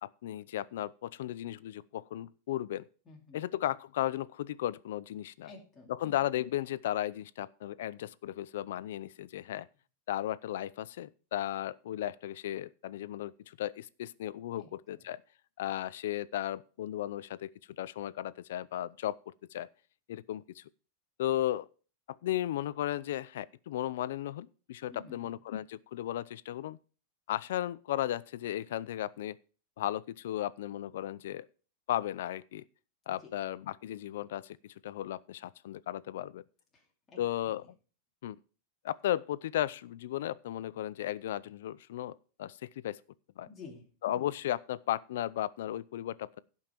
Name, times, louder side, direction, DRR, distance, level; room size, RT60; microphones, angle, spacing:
voice 1, 0.0-2.8 3.3-5.5 5.9-9.7 10.1-15.2 15.6-17.5 17.8-19.7 20.1-20.6 21.2-21.7 22.1-26.8 27.3-29.4 29.8-31.5 31.9-32.6 33.1-36.4 37.2-37.6 38.2-38.4 38.8-43.0 43.4-43.5 44.0-46.4, left 12 dB, 65° left, 0.5 m, -35 dB
voice 2, 3.1-3.5 5.4-6.0 14.6-15.0 24.9-25.4 33.1-33.3 36.7-37.7 43.4-43.9, left 4 dB, 15° left, 2.6 m, -52 dB
16.5 x 5.6 x 4.5 m
supercardioid pair, 175°, 0 cm